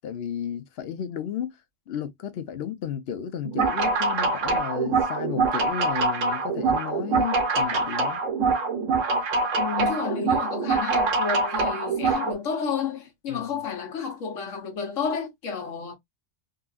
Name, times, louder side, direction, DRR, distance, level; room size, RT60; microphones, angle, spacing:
voice 1, 0.0-1.6 1.9-8.2 13.3-13.5, left 9 dB, 60° left, 0.8 m, -33 dB
sound 1, 3.5-12.3, right 4 dB, 85° right, 1.4 m, -24 dB
voice 2, 9.6-16.0, left 6 dB, 80° left, 1.2 m, -31 dB
3.8 x 2.4 x 2.3 m
omnidirectional pair, 1.3 m